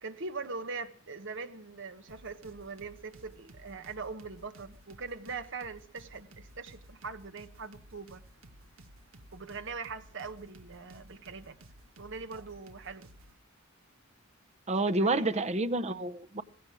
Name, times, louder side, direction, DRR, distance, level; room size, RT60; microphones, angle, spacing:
voice 1, 0.0-8.2 9.3-11.6 12.0-13.1 14.9-15.4, right 4 dB, 65° right, 1.3 m, -42 dB
sound 1, 2.1-13.4, right 1 dB, 80° right, 1.5 m, -55 dB
voice 2, 14.7-16.4, right 2 dB, 35° right, 0.8 m, -29 dB
17.0 x 16.0 x 4.8 m
head